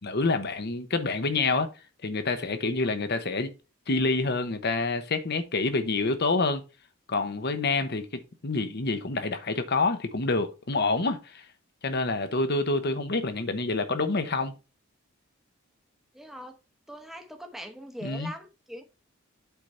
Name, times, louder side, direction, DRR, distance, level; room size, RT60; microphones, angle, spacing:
voice 1, 0.0-1.7 2.0-3.5 3.9-6.6 7.1-8.1 8.4-11.4 11.8-14.5 18.0-18.3, left 3 dB, 50° left, 1.0 m, -27 dB
voice 2, 16.1-16.6 16.9-18.8, equal, ahead, 0.9 m, -41 dB
8.2 x 4.0 x 4.3 m
head